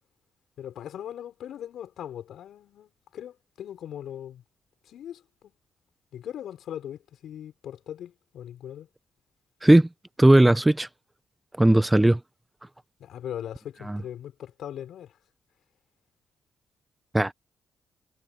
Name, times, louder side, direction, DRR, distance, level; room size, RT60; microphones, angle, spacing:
voice 1, 0.6-4.4 4.8-5.5 6.1-8.9 13.0-15.2, left 10 dB, 75° left, 5.2 m, -39 dB
voice 2, 10.2-10.9 11.6-12.2 13.9-14.0 17.1-17.3, right 1 dB, 15° right, 1.1 m, -17 dB
supercardioid pair, 50°, 0 cm